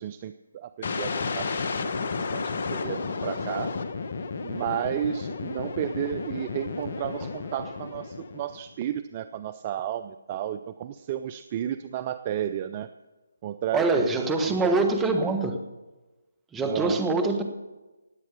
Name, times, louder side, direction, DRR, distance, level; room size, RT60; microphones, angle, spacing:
voice 1, 0.0-1.9 2.3-3.7 4.4-12.9 13.4-14.1 14.5-14.8 16.6-17.0, right 10 dB, 30° right, 12 dB, 0.5 m, -32 dB
sound 1, 0.8-8.7, left 4 dB, 50° left, 1.3 m, -32 dB
voice 2, 13.7-15.6 16.5-17.4, right 3 dB, 10° right, 6 dB, 1.3 m, -24 dB
18.0 x 8.3 x 6.7 m, 1.1 s
figure-of-eight pair, 155°, 0 cm